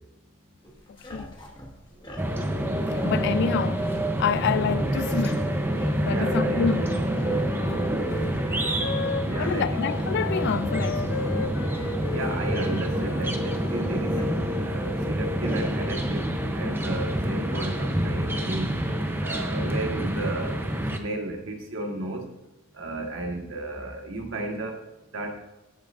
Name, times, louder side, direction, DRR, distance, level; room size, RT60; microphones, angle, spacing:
sound 1, 0.6-16.0, equal, 25° left, 1.6 m, -46 dB
voice 1, 0.9-1.3 3.0-3.9 4.2-5.5 6.0-6.9 9.4-11.3, left 7 dB, 60° left, 0.3 m, -28 dB
sound 2, 2.2-21.0, right 1 dB, 10° right, 0.7 m, -27 dB
voice 2, 6.1-6.6 9.1-9.7 12.1-16.2 16.5-18.7 19.2-20.6 20.9-22.2 22.8-24.7 25.1-25.3, right 2 dB, 65° right, 1.6 m, -33 dB
Wind instrument woodwind instrument, 6.6-14.1, left 4 dB, 85° left, 0.7 m, -36 dB
15.5 x 7.0 x 2.6 m
head